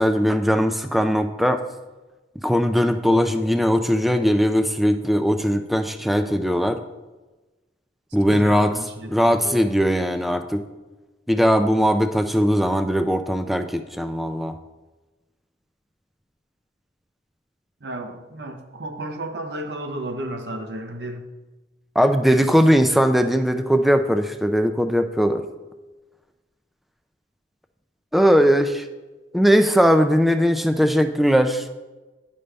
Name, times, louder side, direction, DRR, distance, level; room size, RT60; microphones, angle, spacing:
voice 1, 0.0-1.6 2.4-6.8 8.1-8.7 9.1-10.6 11.3-14.5 22.0-25.5 28.1-28.8 29.3-31.7, equal, ahead, 8 dB, 0.3 m, -19 dB
voice 2, 8.3-9.6 17.8-21.3, right 1 dB, 70° right, 6 dB, 0.8 m, -33 dB
9.9 x 5.3 x 3.3 m, 1.2 s
head